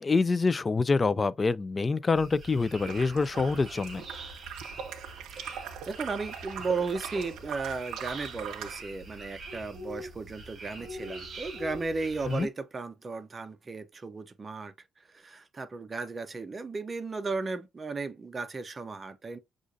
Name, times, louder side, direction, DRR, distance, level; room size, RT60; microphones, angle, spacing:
voice 1, 0.0-4.0 12.3-12.5, left 4 dB, 30° left, 0.3 m, -26 dB
sound 1, 2.1-12.5, right 1 dB, 50° right, 1.3 m, -44 dB
sound 2, 2.8-8.8, right 8 dB, 85° right, 0.5 m, -41 dB
voice 2, 5.4-14.7 15.1-19.4, right 4 dB, 30° right, 0.7 m, -35 dB
6.1 x 2.5 x 2.6 m
cardioid pair, 90°, 0 cm